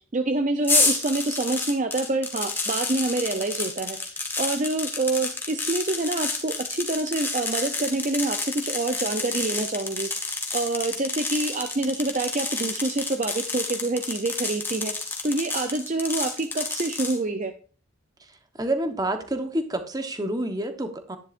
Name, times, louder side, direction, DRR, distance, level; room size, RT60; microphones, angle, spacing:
voice 1, 0.1-10.1 10.5-17.5, right 2 dB, 40° right, 7 dB, 0.6 m, -27 dB
sound 1, 0.6-17.2, left 3 dB, 10° left, 1.5 m, -29 dB
voice 2, 18.6-21.2, right 1 dB, 20° right, 7 dB, 1.1 m, -28 dB
10.5 x 10.5 x 2.6 m, 0.39 s
head